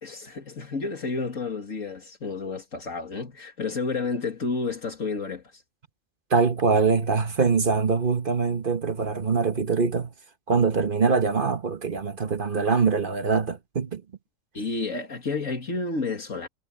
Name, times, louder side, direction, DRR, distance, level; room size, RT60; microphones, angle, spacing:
voice 1, 0.0-5.6 14.5-16.5, left 4 dB, 70° left, 2.7 m, -31 dB
voice 2, 6.3-10.1 10.5-14.0, right 5 dB, 40° right, 1.3 m, -23 dB
omnidirectional pair, 1.4 m